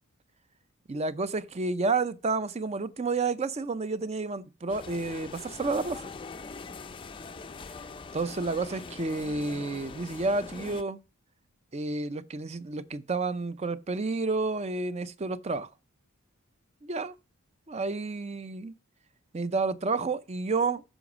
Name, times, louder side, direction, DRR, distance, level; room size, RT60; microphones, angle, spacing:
voice 1, 0.9-6.2 8.1-11.0 11.7-15.7 16.8-17.1 17.7-18.7 19.3-20.8, right 3 dB, 30° right, 0.5 m, -30 dB
sound 1, 4.7-10.8, left 4 dB, 25° left, 0.4 m, -42 dB
9.1 x 6.1 x 6.0 m
head